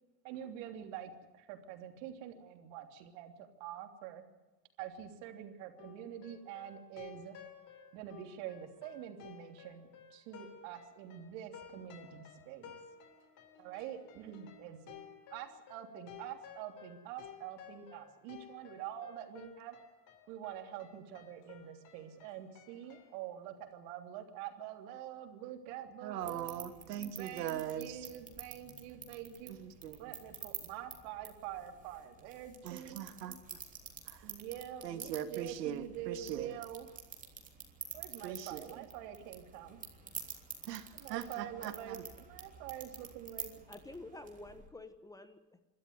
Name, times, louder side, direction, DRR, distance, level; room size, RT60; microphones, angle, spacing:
voice 1, 0.2-4.2 4.8-7.4 7.9-12.8 13.6-15.0 15.3-19.8 20.3-26.7 27.2-29.5 30.0-33.0 34.2-37.0 37.9-39.8 40.9-42.0 42.3-43.5, right 10 dB, 55° right, 6 dB, 3.2 m, -46 dB
sound 1, 5.8-23.2, left 8 dB, 40° left, 3.4 m, -55 dB
voice 2, 26.0-28.0 29.6-30.0 32.6-33.4 34.1-34.3 34.8-36.6 38.2-38.8 40.7-42.0, right 10 dB, 80° right, 10 dB, 2.2 m, -41 dB
sound 2, 26.2-44.7, right 5 dB, 15° right, 3.4 m, -49 dB
voice 3, 43.7-45.6, left 2 dB, 5° left, 11 dB, 1.2 m, -49 dB
26.0 x 13.0 x 9.6 m, 1.1 s
supercardioid pair, 130°, 48 cm